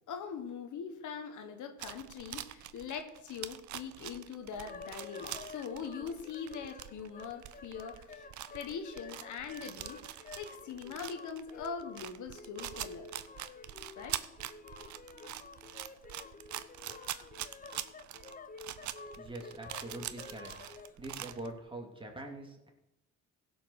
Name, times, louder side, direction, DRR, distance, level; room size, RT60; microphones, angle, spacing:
voice 1, 0.1-8.3 8.5-13.1 14.0-14.2, left 6 dB, 75° left, 6 dB, 1.4 m, -42 dB
sound 1, 1.8-21.5, right 12 dB, 70° right, 0.7 m, -44 dB
sound 2, 4.5-21.0, left 4 dB, 30° left, 0.7 m, -50 dB
voice 2, 19.0-20.5 21.0-22.7, right 2 dB, 15° right, 1 dB, 2.6 m, -44 dB
16.0 x 5.6 x 6.4 m, 0.88 s
cardioid pair, 90°, 30 cm